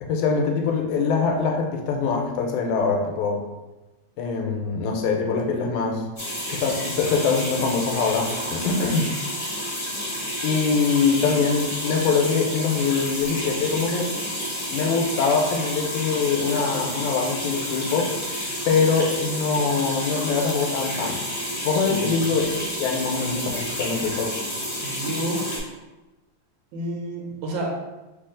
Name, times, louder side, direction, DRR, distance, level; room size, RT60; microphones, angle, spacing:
voice 1, 0.0-3.4 4.2-6.0 6.5-9.1 10.4-14.1 14.7-18.1 18.7-21.2 21.7-22.4 22.8-24.3, left 5 dB, 80° left, 2 dB, 2.0 m, -23 dB
sound 1, 6.2-25.6, equal, 40° left, 0.7 m, -30 dB
voice 2, 21.9-22.2 24.8-25.4 26.7-27.7, right 1 dB, 75° right, -1 dB, 2.1 m, -30 dB
4.6 x 2.7 x 3.7 m, 1.1 s
omnidirectional pair, 3.5 m